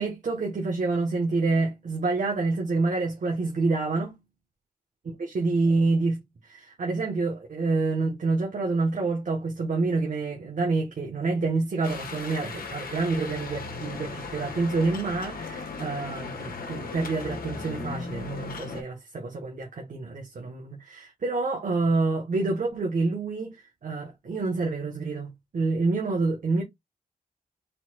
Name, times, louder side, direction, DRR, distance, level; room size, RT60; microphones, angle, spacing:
voice 1, 0.0-4.2 5.2-26.6, right 3 dB, 60° right, 1.3 m, -27 dB
sound 1, 11.8-18.8, left 4 dB, 85° left, 1.2 m, -37 dB
4.3 x 4.2 x 2.4 m
wide cardioid pair, 120°, 15 cm